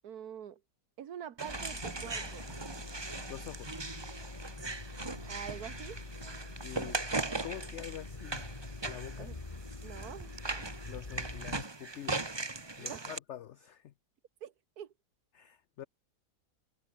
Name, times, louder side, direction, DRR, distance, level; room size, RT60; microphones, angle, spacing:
voice 1, 0.0-0.6 1.0-2.5 5.2-6.0 9.2-9.4 9.8-10.7 12.8-13.1 14.4-14.9, right 9 dB, 65° right, 1.5 m, -45 dB
sound 1, 1.4-13.2, right 3 dB, 20° right, 1.0 m, -39 dB
sound 2, 1.5-11.6, left 3 dB, 20° left, 1.8 m, -45 dB
voice 2, 3.3-3.8 6.6-7.1 7.4-8.6 8.8-9.3 10.9-12.4 12.8-13.9 15.3-15.8, left 11 dB, 65° left, 0.7 m, -46 dB
sound 3, 5.0-10.6, left 2 dB, 40° left, 4.1 m, -61 dB
omnidirectional pair, 1.8 m